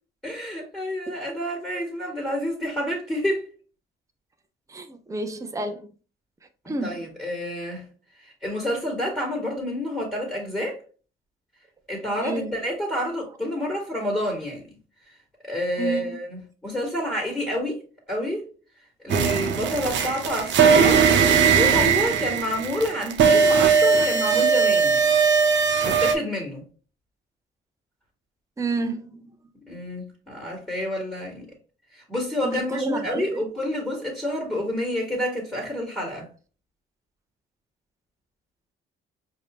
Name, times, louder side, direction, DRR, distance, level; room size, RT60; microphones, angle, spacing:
voice 1, 0.2-3.4 6.8-7.8 8.2-10.8 11.9-14.6 15.4-17.8 18.1-18.4 19.0-21.0 21.5-25.1 25.8-26.6 29.7-31.5 31.9-36.3, left 1 dB, 5° left, 1.9 m, -28 dB
voice 2, 4.7-5.9 6.7-7.1 12.2-12.5 15.8-16.2 28.6-29.3 32.4-33.4, right 3 dB, 15° right, 0.6 m, -30 dB
sound 1, 19.1-26.1, right 6 dB, 65° right, 0.9 m, -19 dB
4.8 x 2.8 x 3.0 m
cardioid pair, 90°, 20 cm